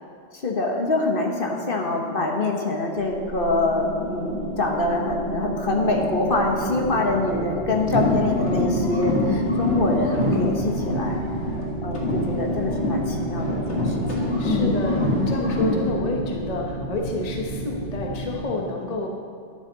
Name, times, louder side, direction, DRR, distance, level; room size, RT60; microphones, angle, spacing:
voice 1, 0.4-11.2 11.8-14.8, left 2 dB, 55° left, 1 dB, 1.3 m, -25 dB
sound 1, 3.0-18.4, right 2 dB, 55° right, 1.2 m, -32 dB
sound 2, 7.8-11.7 11.9-15.9, left 1 dB, 85° left, 1.9 m, -25 dB
voice 2, 14.4-19.1, left 2 dB, 35° left, 0 dB, 1.0 m, -29 dB
11.5 x 10.0 x 4.0 m, 2.4 s
omnidirectional pair, 1.1 m